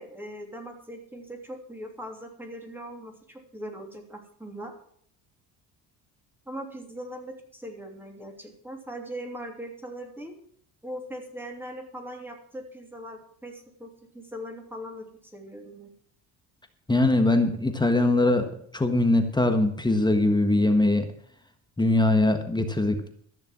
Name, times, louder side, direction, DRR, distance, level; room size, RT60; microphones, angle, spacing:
voice 1, 0.0-4.7 6.5-10.3 10.8-15.0 15.3-15.9, equal, 5° right, 2 dB, 3.1 m, -40 dB
voice 2, 16.9-18.5 18.7-21.1 21.8-23.1, left 2 dB, 10° left, 6 dB, 1.4 m, -22 dB
14.0 x 6.8 x 7.4 m, 0.63 s
cardioid pair, 105°, 39 cm